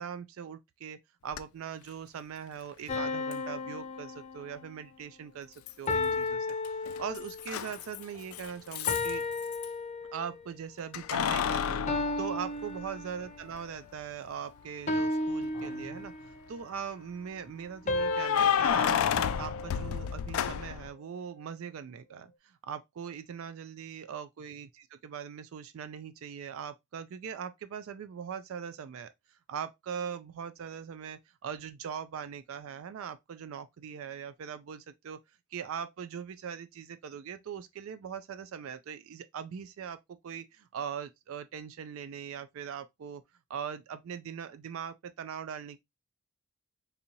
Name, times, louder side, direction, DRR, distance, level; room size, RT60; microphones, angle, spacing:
voice 1, 0.0-6.5 7.0-9.2 10.1-16.1 16.5-24.7 25.0-29.1 29.5-35.2 35.5-43.2 43.5-45.8, right 7 dB, 70° right, 0.3 m, -41 dB
Keys jangling, 1.3-1.4 3.3-3.4 5.7-6.2 6.5-9.7 10.9-13.1 13.5-13.6 15.4-16.0 17.9-20.9, left 8 dB, 80° left, 0.3 m, -31 dB
sound 1, 2.9-4.8 5.9-7.5 8.9-10.4 11.9-13.5 14.9-16.5 17.9-20.2, left 2 dB, 35° left, 0.6 m, -34 dB
4.0 x 2.7 x 2.8 m
head